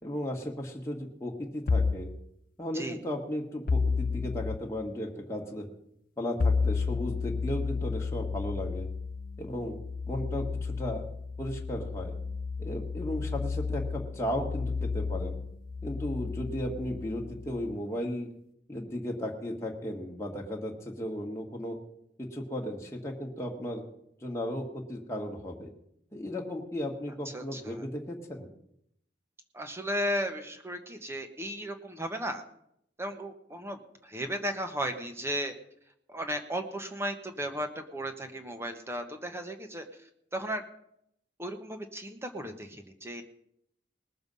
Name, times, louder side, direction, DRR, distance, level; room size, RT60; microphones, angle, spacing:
voice 1, 0.0-2.1 2.6-5.7 6.2-8.9 9.4-9.8 10.1-11.0 11.4-12.1 12.6-15.4 15.8-18.3 18.7-21.8 22.2-23.8 24.2-25.7 26.1-28.5, left 1 dB, 15° left, -1 dB, 1.6 m, -35 dB
sound 1, 1.7-2.1 3.7-4.6 6.4-17.8, left 4 dB, 50° left, 0.5 m, -32 dB
voice 2, 27.2-27.9 29.5-32.4 33.0-35.5 36.1-39.9 40.3-40.6 41.4-43.2, equal, 15° right, 5 dB, 1.1 m, -35 dB
20.0 x 7.0 x 5.4 m, 0.74 s
head